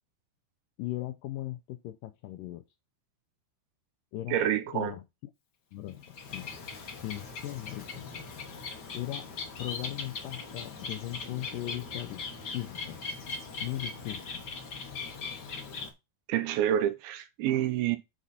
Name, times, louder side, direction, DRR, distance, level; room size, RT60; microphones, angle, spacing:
voice 1, 0.8-2.6 4.1-4.4 4.7-5.0 5.7-6.5 7.0-8.1 8.9-9.3 9.6-12.2 12.5-13.0 13.6-14.4, left 15 dB, 90° left, 1.9 m, -38 dB
voice 2, 4.3-4.9 16.3-18.0, right 11 dB, 80° right, 2.5 m, -28 dB
Bird, 5.9-15.9, left 4 dB, 70° left, 0.9 m, -40 dB
9.4 x 4.1 x 4.1 m
omnidirectional pair, 4.4 m